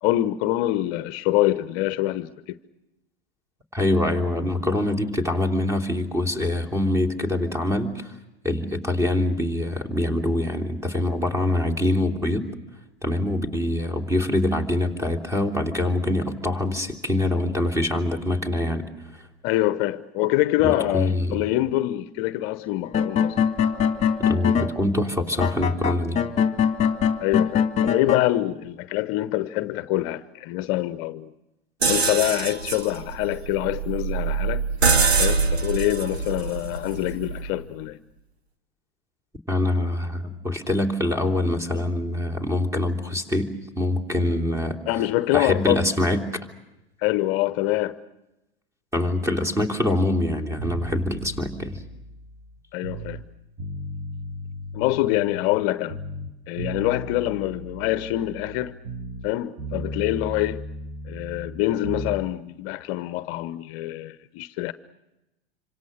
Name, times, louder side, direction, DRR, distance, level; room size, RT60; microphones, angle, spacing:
voice 1, 0.0-2.6 19.4-23.4 27.2-31.3 31.9-34.6 35.2-38.0 44.9-45.8 47.0-48.0 52.7-53.2 54.7-56.0 56.5-58.7 59.2-60.6 61.1-64.7, left 16 dB, 45° left, 0.9 m, -25 dB
voice 2, 3.7-8.1 8.4-12.5 13.0-18.9 20.6-21.4 24.2-26.2 39.5-43.5 43.8-44.8 45.3-46.2 48.9-51.8, left 1 dB, 10° right, 3.0 m, -24 dB
sound 1, 22.8-24.7 25.4-28.2, left 7 dB, 20° left, 2.0 m, -22 dB
sound 2, 31.8-37.6, right 4 dB, 85° right, 2.0 m, -24 dB
sound 3, 50.6-53.3 53.6-55.6 55.9-59.3 59.6-62.2, right 1 dB, 35° right, 5.5 m, -36 dB
26.5 x 26.0 x 6.5 m
hypercardioid pair, 95°, 31 cm